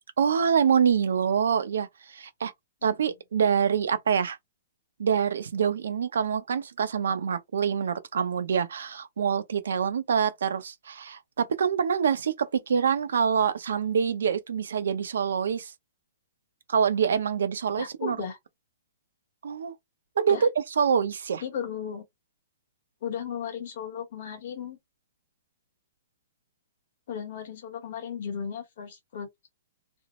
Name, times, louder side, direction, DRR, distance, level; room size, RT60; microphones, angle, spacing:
voice 1, 0.2-2.5 2.8-4.4 5.0-15.7 16.7-18.2 19.4-19.7 20.2-20.5 20.8-21.4, right 7 dB, 80° right, 0.6 m, -25 dB
voice 2, 17.8-18.4 20.2-20.5 21.4-22.0 23.0-24.8 27.1-29.3, left 7 dB, 45° left, 1.1 m, -35 dB
2.6 x 2.0 x 2.9 m
hypercardioid pair, 180°, 0 cm